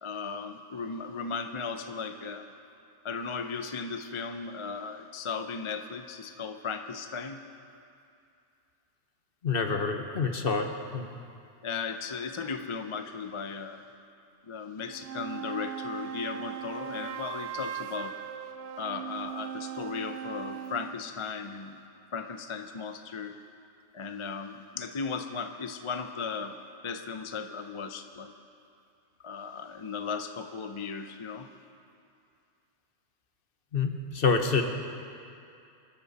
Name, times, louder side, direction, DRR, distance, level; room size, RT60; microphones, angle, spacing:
voice 1, 0.0-2.5 3.0-7.4 11.6-13.8 14.5-18.1 18.8-21.8 22.1-23.4 23.9-26.6 26.8-28.3 29.2-31.5, left 5 dB, 35° left, 7 dB, 0.5 m, -36 dB
voice 2, 9.4-11.1 33.7-34.6, left 4 dB, 50° left, 5 dB, 1.3 m, -27 dB
sound 1, 14.8-21.0, right 9 dB, 65° right, 0.8 m, -39 dB
27.0 x 12.5 x 4.2 m, 2.5 s
omnidirectional pair, 1.2 m